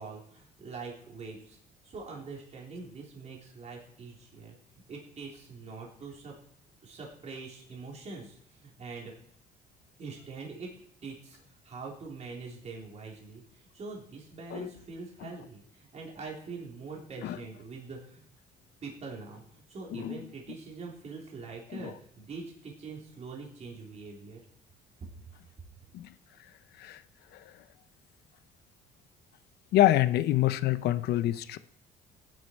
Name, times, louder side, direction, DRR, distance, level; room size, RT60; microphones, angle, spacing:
voice 1, 0.0-1.6 1.8-6.4 6.8-9.1 10.0-10.7 11.0-18.2 18.8-24.4, right 4 dB, 40° right, -2 dB, 3.8 m, -44 dB
voice 2, 29.7-31.6, left 14 dB, 75° left, 13 dB, 0.8 m, -26 dB
16.0 x 10.5 x 4.7 m, 0.64 s
cardioid pair, 110°, 17 cm